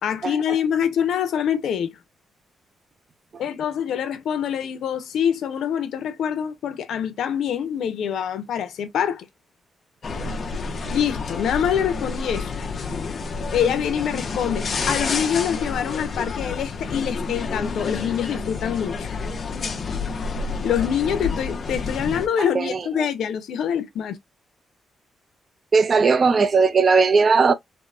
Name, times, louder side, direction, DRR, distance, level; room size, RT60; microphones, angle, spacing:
voice 1, 0.0-2.0 3.4-9.3 10.9-12.5 13.5-19.1 20.6-24.2, left 8 dB, 80° left, 0.6 m, -25 dB
sound 1, 10.0-22.3, left 4 dB, 40° left, 0.6 m, -29 dB
voice 2, 25.7-27.5, right 4 dB, 35° right, 0.4 m, -17 dB
3.6 x 2.0 x 2.4 m
cardioid pair, 145°, 0 cm